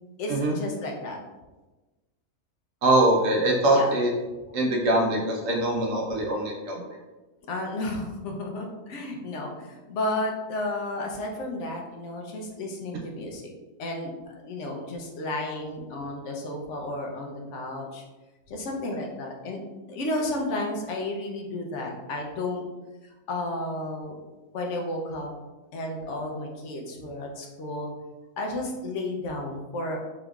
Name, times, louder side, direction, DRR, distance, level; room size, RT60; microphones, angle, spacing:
voice 1, 0.2-1.2 3.7-4.0 7.5-13.5 13.8-18.0 18.5-19.6 19.9-22.6 23.0-24.1 24.5-25.3 25.7-27.9 28.4-30.0, left 1 dB, 60° left, 1 dB, 0.9 m, -32 dB
voice 2, 2.8-4.1 4.5-6.8, right 1 dB, 65° right, 0 dB, 0.9 m, -23 dB
4.1 x 3.7 x 2.3 m, 1.2 s
omnidirectional pair, 1.6 m